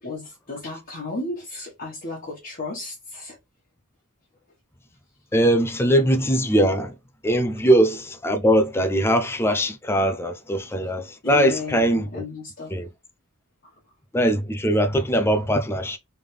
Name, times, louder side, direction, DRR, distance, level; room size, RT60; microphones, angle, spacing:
voice 1, 0.0-3.4 11.2-12.7, left 3 dB, 40° left, 1.4 m, -34 dB
voice 2, 5.3-7.0 7.2-12.2 12.7-12.9 14.1-16.0, equal, 10° left, 0.4 m, -21 dB
3.5 x 3.4 x 3.2 m
head